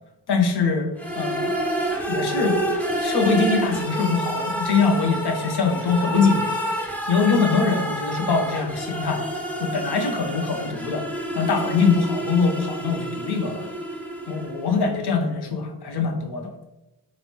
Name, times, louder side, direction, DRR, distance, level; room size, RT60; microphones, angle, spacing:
voice 1, 0.3-0.9 1.2-1.5 2.1-2.6 3.0-6.5 7.1-9.2 9.6-11.0 11.3-13.7 14.3-16.5, left 4 dB, 55° left, 4 dB, 0.8 m, -23 dB
sound 1, 1.0-14.8, right 1 dB, 5° left, 0.6 m, -28 dB
3.9 x 2.0 x 3.0 m, 0.96 s
supercardioid pair, 40°, 46 cm